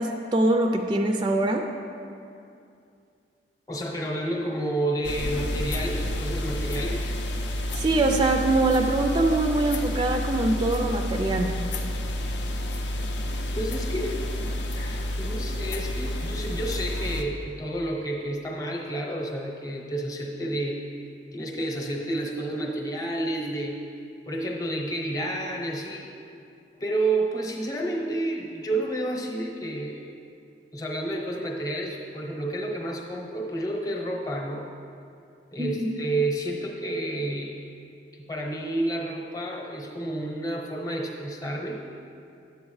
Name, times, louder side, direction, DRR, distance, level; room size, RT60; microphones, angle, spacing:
voice 1, 0.0-1.6 7.7-11.5 35.6-35.9, right 2 dB, 25° right, 4 dB, 0.3 m, -23 dB
voice 2, 3.7-7.2 13.5-14.3 14.8-20.8 21.3-23.8 24.3-26.1 26.8-30.1 30.7-34.7 35.5-37.6 38.3-41.8, right 1 dB, 20° left, 0 dB, 0.9 m, -30 dB
sound 1, 5.0-17.2, left 1 dB, 75° left, 0.6 m, -30 dB
10.5 x 7.7 x 3.2 m, 2.5 s
head